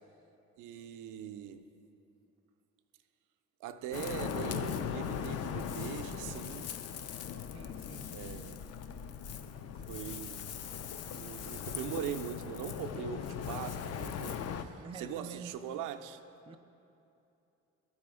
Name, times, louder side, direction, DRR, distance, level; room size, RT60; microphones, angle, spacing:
voice 1, 0.6-1.6 3.6-6.7 8.1-8.6 9.9-10.4 11.1-16.2, right 9 dB, 90° right, 0.5 m, -41 dB
Ocean, 3.9-14.6, left 8 dB, 55° left, 0.5 m, -39 dB
voice 2, 7.5-8.1 14.8-15.6 16.5-16.6, right 6 dB, 20° right, 0.3 m, -47 dB
11.5 x 4.2 x 4.9 m
cardioid pair, 90°, 30 cm